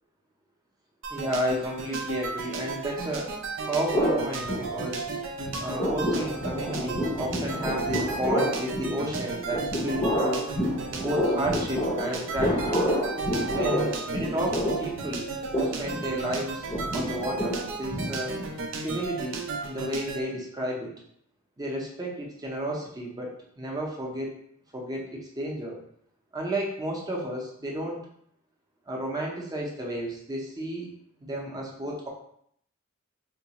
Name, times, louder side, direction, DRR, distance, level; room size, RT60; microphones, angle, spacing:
sound 1, 1.0-20.2, right 4 dB, 65° right, 0.5 m, -35 dB
voice 1, 1.1-3.3 3.7-5.0 5.6-10.5 11.0-12.9 13.5-16.6 16.9-18.3 18.8-20.9 21.6-24.4 24.7-25.8 26.3-28.0 28.9-30.9 31.2-32.1, right 1 dB, 20° right, -2 dB, 0.6 m, -32 dB
sound 2, 3.9-5.2 5.4-18.6, equal, 25° left, 0.6 m, -29 dB
3.7 x 2.4 x 2.9 m, 0.68 s
head